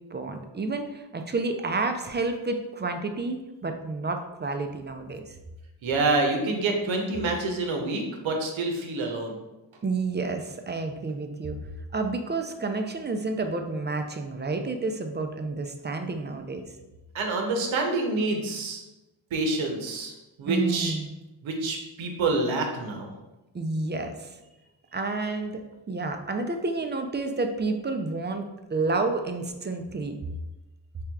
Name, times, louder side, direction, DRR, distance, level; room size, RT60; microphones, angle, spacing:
voice 1, 0.1-5.4 9.8-11.6 11.9-16.6 20.5-21.1 23.5-24.3 24.9-30.2, right 3 dB, 25° right, 5 dB, 0.4 m, -30 dB
voice 2, 5.8-9.4 17.1-18.8 19.3-20.1 20.4-20.9 21.4-23.1, right 3 dB, 75° right, 3 dB, 0.8 m, -27 dB
4.6 x 3.3 x 2.3 m, 1.0 s
cardioid pair, 50°, 47 cm